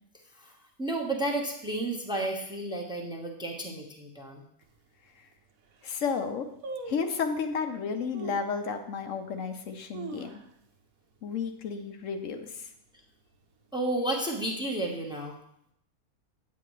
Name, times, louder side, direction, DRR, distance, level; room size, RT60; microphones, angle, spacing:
voice 1, 0.8-4.4 13.7-15.4, right 1 dB, 5° right, 0 dB, 0.9 m, -32 dB
sound 1, 4.6-4.7 5.3-5.4 5.6-6.0 6.6-7.4 8.1-8.5 9.0-9.1 9.7-10.8 11.1-11.2 11.5-11.9 12.3-12.7 13.3-14.1 14.3-14.4, right 4 dB, 70° right, 1.2 m, -42 dB
voice 2, 5.8-6.5 6.9-10.4 11.2-12.7, left 5 dB, 65° left, 6 dB, 1.0 m, -32 dB
8.8 x 8.3 x 3.1 m, 0.73 s
omnidirectional pair, 1.5 m